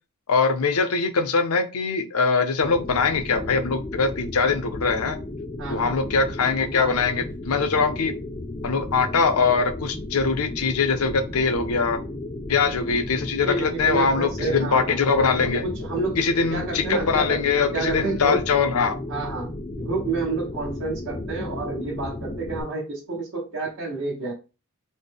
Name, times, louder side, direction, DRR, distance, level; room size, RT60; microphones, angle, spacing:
voice 1, 0.3-5.2 5.7-8.1 8.6-12.0 12.5-15.6 16.2-19.0, left 4 dB, 75° left, 8 dB, 0.6 m, -22 dB
sound 1, 2.6-22.6, left 2 dB, 20° left, 0.4 m, -34 dB
voice 2, 5.6-6.0 13.4-15.0 15.6-17.4 17.7-18.5 19.1-24.3, right 3 dB, 60° right, -6 dB, 1.0 m, -29 dB
4.1 x 2.1 x 3.4 m, 0.31 s
head